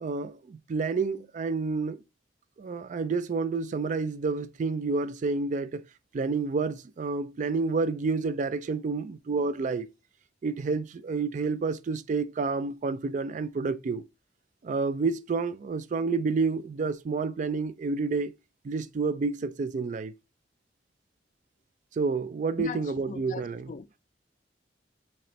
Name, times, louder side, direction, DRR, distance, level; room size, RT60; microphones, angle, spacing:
voice 1, 0.0-2.0 2.6-5.8 6.1-9.9 10.4-14.0 14.6-18.3 18.6-20.1 21.9-23.7, right 4 dB, 45° right, 0.3 m, -29 dB
voice 2, 22.6-24.0, left 5 dB, 45° left, 0.3 m, -40 dB
4.2 x 3.0 x 3.1 m
head